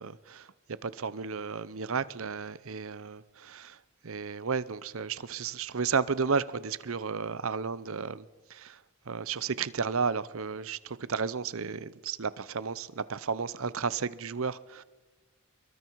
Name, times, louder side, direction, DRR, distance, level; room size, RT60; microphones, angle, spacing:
voice 1, 0.0-3.8 4.0-8.2 8.5-8.8 9.1-14.8, right 5 dB, 70° right, 0.7 m, -33 dB
26.5 x 23.0 x 4.7 m
head